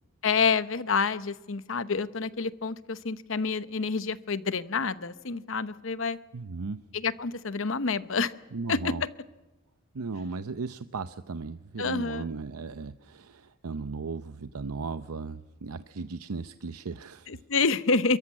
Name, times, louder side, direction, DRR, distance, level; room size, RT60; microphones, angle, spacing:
voice 1, 0.2-6.2 6.9-8.3 8.7-8.9 11.8-12.3 17.3-18.2, left 4 dB, 65° left, 14 dB, 0.9 m, -28 dB
voice 2, 6.3-6.8 8.5-9.0 9.9-17.4, right 4 dB, 90° right, 11 dB, 0.7 m, -36 dB
29.5 x 14.0 x 8.6 m, 1.1 s
head